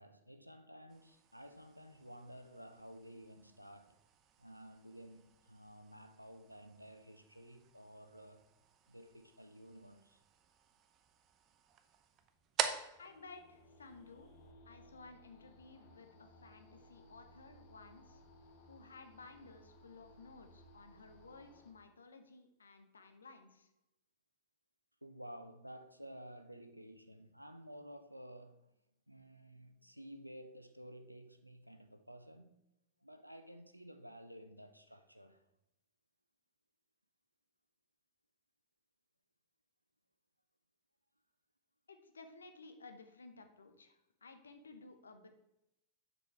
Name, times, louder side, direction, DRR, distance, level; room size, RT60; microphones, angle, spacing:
voice 1, 0.0-4.0 4.4-8.4 8.9-10.2 18.5-18.9 25.0-28.7 29.1-32.6 33.0-35.5, equal, 90° right, 0.6 m, -53 dB
sound 1, 0.9-14.5, right 8 dB, 30° right, 0.7 m, -47 dB
sound 2, 12.9-21.7, equal, 50° left, 1.2 m, -61 dB
voice 2, 13.0-14.3 14.7-18.2 18.7-23.7 41.9-45.3, left 3 dB, 75° left, 0.9 m, -56 dB
7.3 x 5.4 x 4.6 m
figure-of-eight pair, 90°, 0 cm